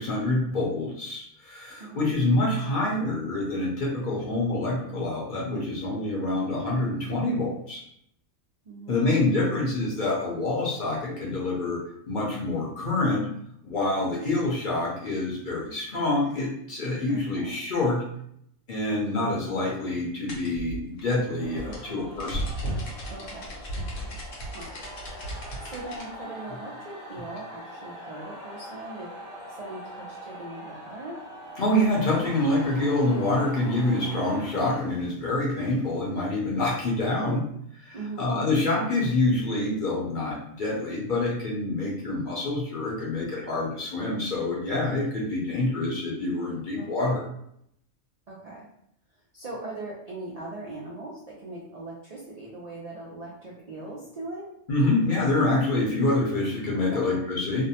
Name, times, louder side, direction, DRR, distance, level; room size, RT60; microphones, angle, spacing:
voice 1, 0.0-7.8 8.9-11.8 12.1-13.3 13.6-18.0 18.7-22.4 31.6-37.4 37.8-47.2 54.7-57.7, left 2 dB, 50° left, -4 dB, 0.7 m, -26 dB
voice 2, 1.8-2.1 8.6-9.4 17.1-17.2 21.7-22.0 23.1-24.2 24.5-24.7 25.4-29.1 29.5-31.2 37.9-38.5 46.7-47.2 48.3-48.7 49.3-54.5 56.7-57.2, right 2 dB, 85° right, -5 dB, 0.3 m, -40 dB
sound 1, 20.3-26.1, right 1 dB, 70° left, 1.0 m, -35 dB
sound 2, 21.4-35.6, equal, 40° right, 0.6 m, -43 dB
2.6 x 2.1 x 2.7 m, 0.72 s
omnidirectional pair, 1.4 m